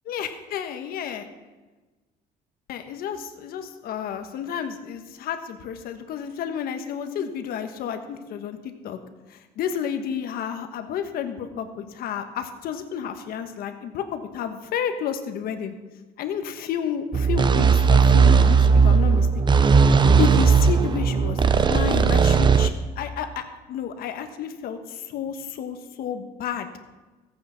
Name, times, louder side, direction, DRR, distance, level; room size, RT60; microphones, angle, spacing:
voice 1, 0.1-1.2 2.7-8.6 8.8-9.0 9.3-15.7 16.2-19.6 20.2-26.7, left 8 dB, 70° left, 7 dB, 1.3 m, -31 dB
sound 1, 17.1-22.7, right 5 dB, 30° right, 0.7 m, -17 dB
14.5 x 8.6 x 5.8 m, 1.2 s
cardioid pair, 115°, 16 cm